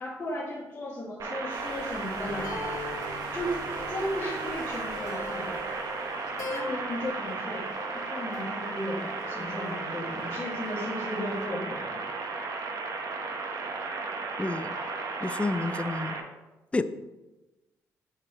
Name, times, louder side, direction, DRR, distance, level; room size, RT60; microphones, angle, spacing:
voice 1, 0.0-2.6 3.3-3.6 3.9-5.5 6.5-7.7 7.9-12.0, left 1 dB, 35° left, -9 dB, 1.8 m, -35 dB
sound 1, 1.2-16.2, right 4 dB, 60° right, 0.9 m, -35 dB
sound 2, 1.5-6.5, right 2 dB, 90° right, 1.3 m, -50 dB
sound 3, 1.9-11.4, left 2 dB, 65° left, 1.3 m, -43 dB
voice 2, 14.4-14.8 15.2-16.2 16.7-16.8, left 2 dB, 20° left, 12 dB, 0.4 m, -29 dB
6.1 x 5.8 x 2.9 m, 1.1 s
cardioid pair, 75°, 7 cm